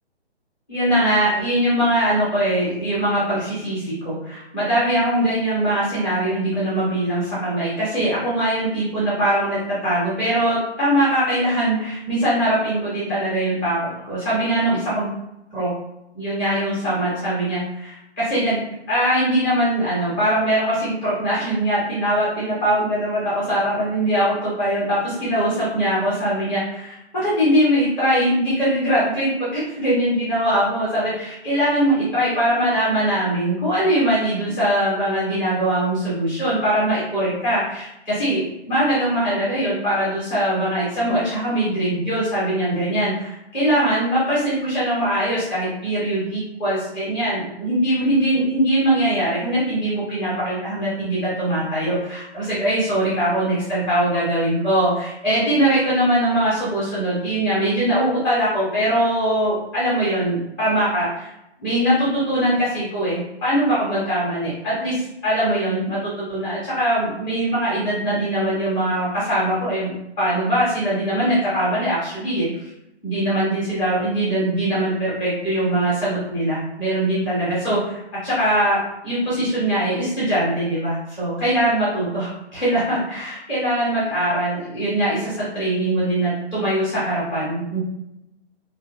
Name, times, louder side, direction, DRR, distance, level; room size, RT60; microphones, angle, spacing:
voice 1, 0.7-15.1 15.5-15.7 16.1-61.3 61.6-69.9 70.2-72.7 73.0-87.8, right 1 dB, 5° left, -10 dB, 0.5 m, -22 dB
2.6 x 2.2 x 2.5 m, 0.86 s
figure-of-eight pair, 135°, 33 cm